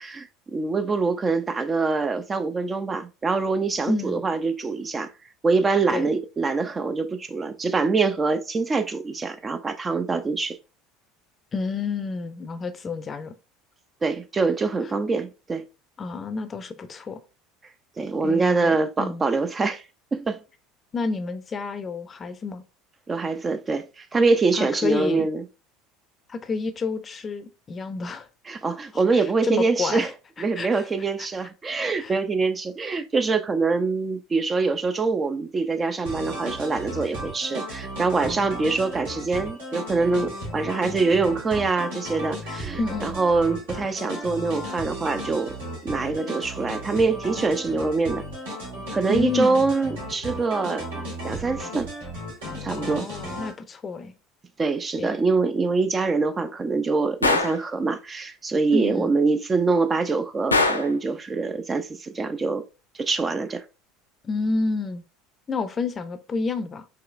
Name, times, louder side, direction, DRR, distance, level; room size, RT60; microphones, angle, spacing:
voice 1, 0.0-5.1 5.4-10.6 14.0-15.6 18.0-19.8 20.1-20.4 23.1-25.4 28.5-30.1 30.4-45.5 45.8-48.2 48.9-50.9 51.2-51.9 52.6-53.1 54.6-62.6 62.9-63.6, right 4 dB, 25° right, 0.4 m, -24 dB
voice 2, 3.9-4.2 5.9-6.1 11.5-13.4 16.0-17.2 18.2-19.2 20.9-22.6 24.5-25.3 26.3-28.3 28.9-30.1 30.6-30.9 32.0-32.1 38.2-38.5 42.8-43.2 49.1-49.6 52.7-54.1 55.0-55.2 58.7-59.1 64.2-65.0 65.5-66.9, left 4 dB, 30° left, 0.5 m, -29 dB
sound 1, 36.0-53.5, equal, 75° right, 1.8 m, -35 dB
Gunshot gunfire, 57.2-57.6 60.5-61.0, left 3 dB, 90° left, 0.4 m, -21 dB
4.7 x 3.0 x 2.4 m
figure-of-eight pair, 65°, 0 cm